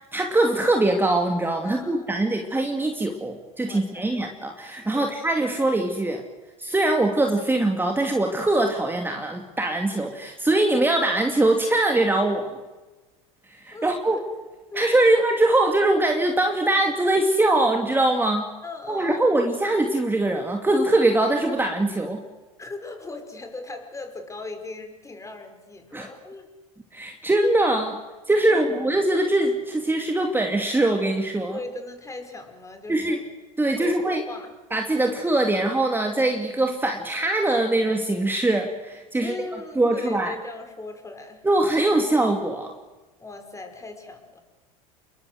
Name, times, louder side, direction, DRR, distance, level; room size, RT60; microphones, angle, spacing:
voice 1, 0.1-6.2 6.6-12.6 13.5-14.2 14.7-18.5 18.9-22.2 25.9-26.1 26.9-28.0 28.3-31.6 32.9-33.2 33.6-34.2 34.7-39.3 39.8-40.3 41.4-42.7, right 2 dB, 10° right, 3 dB, 2.7 m, -22 dB
voice 2, 1.6-2.3 3.7-4.2 4.9-5.2 13.7-14.2 14.7-15.2 18.6-19.4 22.6-26.5 28.5-28.8 31.5-33.2 33.8-34.5 39.2-41.4 43.2-44.4, left 3 dB, 15° left, 6 dB, 5.6 m, -38 dB
28.5 x 22.0 x 8.0 m, 1.2 s
hypercardioid pair, 85°, 18 cm